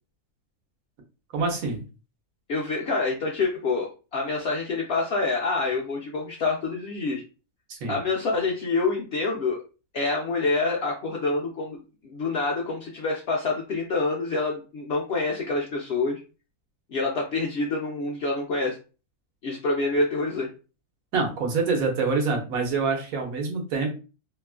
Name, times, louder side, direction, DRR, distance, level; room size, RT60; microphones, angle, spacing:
voice 1, 1.3-1.8 7.7-8.0 21.1-23.9, right 4 dB, 70° right, 2 dB, 1.2 m, -26 dB
voice 2, 2.5-7.2 7.9-9.6 9.9-11.8 12.1-16.2 16.9-18.8 19.4-20.5, left 3 dB, 85° left, -1 dB, 0.5 m, -27 dB
3.0 x 2.3 x 2.3 m, 0.33 s
omnidirectional pair, 1.6 m